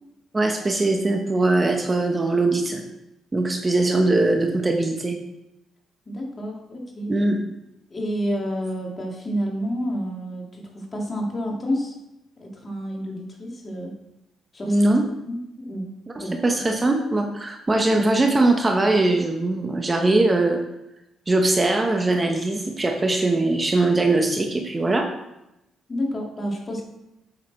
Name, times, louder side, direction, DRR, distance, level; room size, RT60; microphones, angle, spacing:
voice 1, 0.3-2.8 3.3-5.2 7.1-7.4 14.7-15.0 16.1-20.6 21.3-25.1, right 2 dB, 25° right, 3 dB, 1.1 m, -21 dB
voice 2, 6.1-7.1 7.9-12.0 12.4-13.9 14.5-14.8 15.2-15.9 16.2-16.4 25.9-26.8, equal, 30° left, 0 dB, 2.4 m, -29 dB
8.5 x 6.7 x 4.2 m, 0.89 s
cardioid pair, 90°, 0 cm